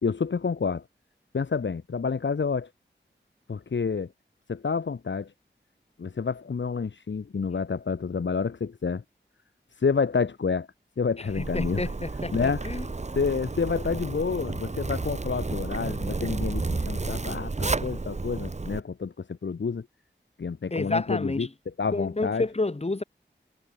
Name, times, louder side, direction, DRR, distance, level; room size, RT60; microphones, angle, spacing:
voice 1, 0.0-0.8 1.3-2.7 3.5-4.1 4.5-5.3 6.0-9.0 9.8-10.7 11.0-11.9 12.3-12.7 13.2-19.9 20.4-21.5 21.8-22.5, left 5 dB, 70° left, 1.1 m, -29 dB
Zipper (clothing), 11.3-18.8, right 3 dB, 35° right, 1.1 m, -31 dB
voice 2, 11.5-12.8 20.7-21.5 21.9-23.0, left 2 dB, 35° left, 1.8 m, -29 dB
wide cardioid pair, 50°, 20 cm